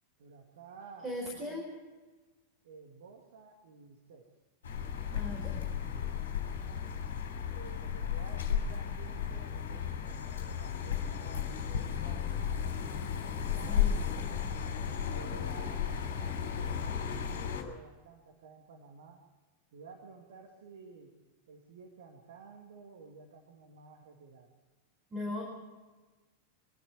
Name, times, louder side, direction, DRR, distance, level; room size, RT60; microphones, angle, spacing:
voice 1, 0.2-1.7 2.6-4.3 7.5-12.4 13.1-14.7 15.1-19.2 19.7-21.1 21.5-24.5, right 4 dB, 60° right, 2 dB, 2.1 m, -53 dB
voice 2, 1.0-1.7 5.1-5.6 13.7-14.4 25.1-25.4, left 1 dB, 20° right, 0 dB, 4.6 m, -39 dB
sound 1, 4.6-17.6, left 8 dB, 60° left, 3.4 m, -34 dB
23.5 x 13.0 x 9.3 m, 1.3 s
figure-of-eight pair, 90°, 0 cm